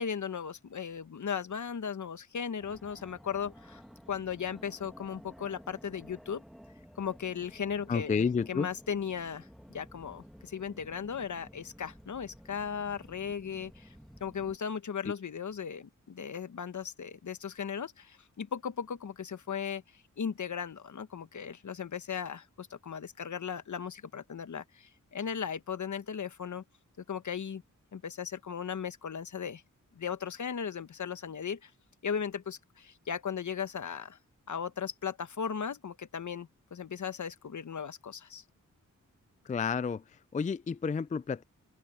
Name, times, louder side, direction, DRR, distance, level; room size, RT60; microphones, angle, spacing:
voice 1, 0.0-3.8 4.1-6.4 7.0-13.9 14.2-26.6 27.1-27.6 27.9-29.6 29.9-31.7 32.0-34.2 34.5-38.4, left 7 dB, 65° left, 1.2 m, -37 dB
Fixed-wing aircraft airplane, 2.6-14.6, equal, ahead, 2.0 m, -53 dB
voice 2, 7.9-8.7 39.5-40.0 40.3-41.4, left 5 dB, 25° left, 0.4 m, -30 dB
open air
cardioid pair, 65°, 32 cm